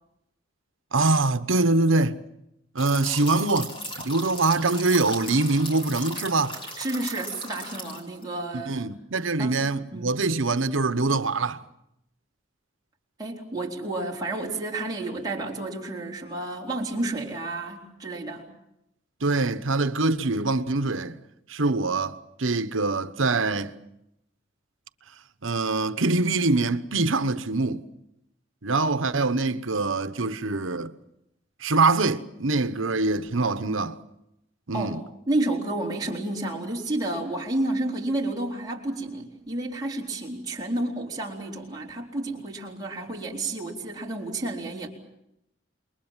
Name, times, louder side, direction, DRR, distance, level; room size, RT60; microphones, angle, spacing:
voice 1, 0.9-2.2 2.7-3.7 4.0-6.5 8.5-11.6 19.2-21.2 21.5-23.7 25.4-27.8 28.6-30.9 31.6-34.0 34.7-35.0, right 3 dB, 85° right, 1.1 m, -24 dB
sound 1, 2.8-8.2, equal, 25° left, 5.1 m, -37 dB
voice 2, 6.8-8.9 9.4-9.6 9.9-10.2 13.2-18.5 34.7-35.0 35.3-44.9, right 2 dB, 20° right, 4.1 m, -30 dB
28.0 x 22.5 x 7.4 m
head